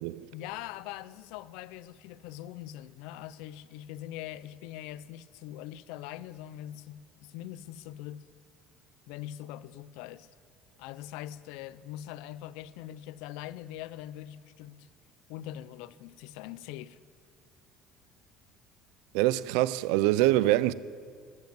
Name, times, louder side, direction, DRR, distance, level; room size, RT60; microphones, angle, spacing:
voice 1, 0.3-8.2 9.1-10.3 10.8-14.9 15.3-17.0, left 13 dB, 80° left, 0.4 m, -42 dB
voice 2, 19.1-20.7, right 16 dB, 90° right, 0.3 m, -24 dB
14.0 x 5.2 x 9.2 m
cardioid pair, 170°, 0 cm